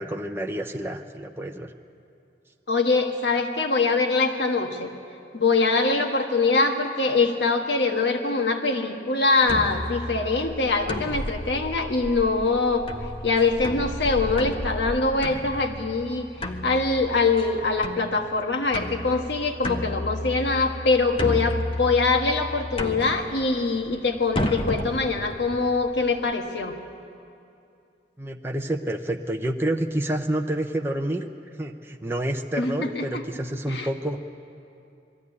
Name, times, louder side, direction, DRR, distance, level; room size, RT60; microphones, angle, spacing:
voice 1, 0.0-1.7 28.2-31.3 31.6-34.2, right 1 dB, 15° right, 3 dB, 0.7 m, -28 dB
voice 2, 2.7-4.9 5.3-12.9 13.2-16.3 16.6-26.8 32.6-33.2 33.7-33.9, left 3 dB, 85° left, 4 dB, 1.4 m, -23 dB
sound 1, 9.4-26.3, left 1 dB, 30° left, 0.9 m, -33 dB
21.0 x 14.0 x 9.7 m, 2.6 s
head